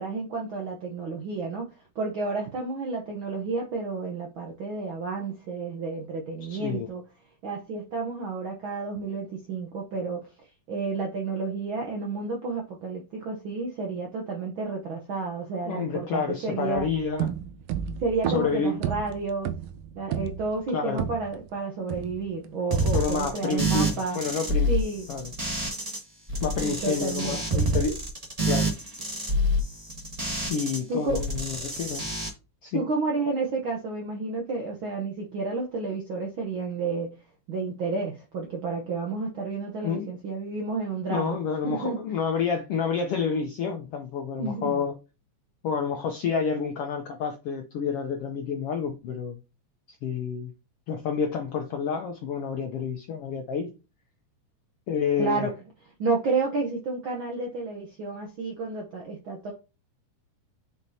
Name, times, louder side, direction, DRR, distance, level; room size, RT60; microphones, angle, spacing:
voice 1, 0.0-1.7 1.9-7.0 7.4-10.3 10.7-16.9 18.0-19.5 19.9-24.2 24.7-25.1 26.6-27.6 30.9-31.2 32.7-37.1 37.5-41.4 41.6-42.0 44.4-44.8 55.2-55.5 56.0-59.5, right 3 dB, 70° right, 1.2 m, -31 dB
voice 2, 6.5-6.9 15.6-17.3 18.3-18.8 20.7-21.0 22.9-24.7 25.1-25.3 26.4-28.0 28.4-28.7 30.5-32.1 32.6-32.8 39.8-40.1 41.1-45.0 45.6-49.4 50.0-50.5 50.9-53.7 54.9-55.5, left 6 dB, 75° left, 1.3 m, -29 dB
sound 1, 16.7-21.5 21.9-22.5, right 10 dB, 90° right, 2.2 m, -33 dB
sound 2, 22.7-26.0 26.3-30.8 31.1-32.3, right 1 dB, 35° right, 0.6 m, -27 dB
7.9 x 5.3 x 2.8 m
omnidirectional pair, 3.6 m